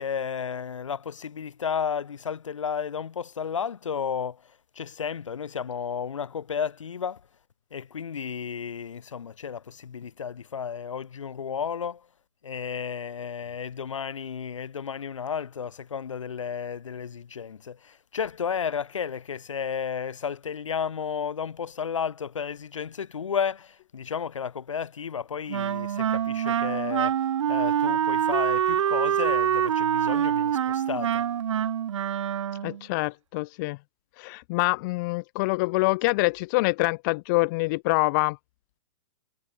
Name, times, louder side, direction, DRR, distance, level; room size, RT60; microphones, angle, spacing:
voice 1, 0.0-7.2 7.7-12.1 12.4-31.2, left 7 dB, 85° left, 0.9 m, -33 dB
Wind instrument woodwind instrument, 25.5-32.8, right 9 dB, 75° right, 0.7 m, -25 dB
voice 2, 32.6-33.8 34.2-38.4, left 24 dB, 40° left, 0.3 m, -25 dB
hypercardioid pair, 120°, 16 cm